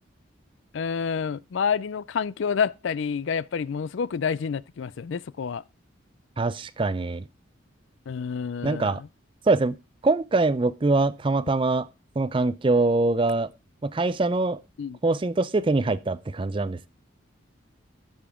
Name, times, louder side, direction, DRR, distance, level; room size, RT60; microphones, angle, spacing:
voice 1, 0.7-5.6 8.1-9.1 14.8-15.0, left 6 dB, 65° left, 0.4 m, -28 dB
voice 2, 6.4-7.2 8.6-9.0 9.5-9.8 10.0-11.9 12.2-13.5 13.8-14.6 15.0-16.9, right 3 dB, 25° right, 0.4 m, -23 dB
11.5 x 7.0 x 3.6 m
head